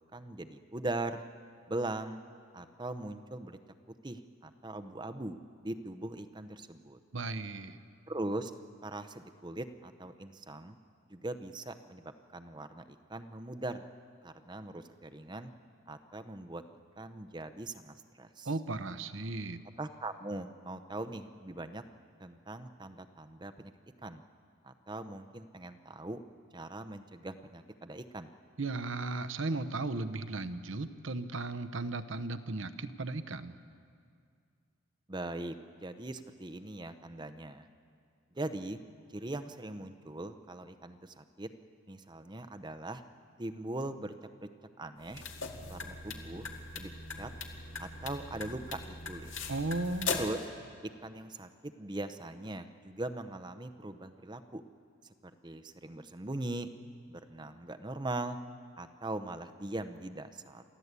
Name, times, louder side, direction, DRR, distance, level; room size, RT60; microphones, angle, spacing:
voice 1, 0.1-1.2 1.7-2.2 2.5-3.6 4.0-7.0 8.1-8.5 8.8-10.8 11.1-13.8 14.2-15.5 15.9-16.6 17.0-18.5 19.8-21.8 22.2-23.7 24.0-24.2 24.6-26.2 26.5-28.3 35.1-37.7 38.3-38.8 39.1-41.5 41.9-43.0 43.4-44.1 44.8-45.2 45.7-46.5 46.7-47.3 47.8-49.3 50.1-50.4 50.8-54.6 55.4-56.7 57.1-58.4 58.8-60.6, right 2 dB, 20° right, 9 dB, 0.7 m, -40 dB
voice 2, 7.1-7.8 18.4-19.6 28.6-33.6 49.5-50.1, right 2 dB, 65° right, 10 dB, 0.9 m, -36 dB
sound 1, 45.0-50.4, left 4 dB, 65° left, 2.0 m, -40 dB
29.0 x 14.0 x 8.3 m, 2.3 s
head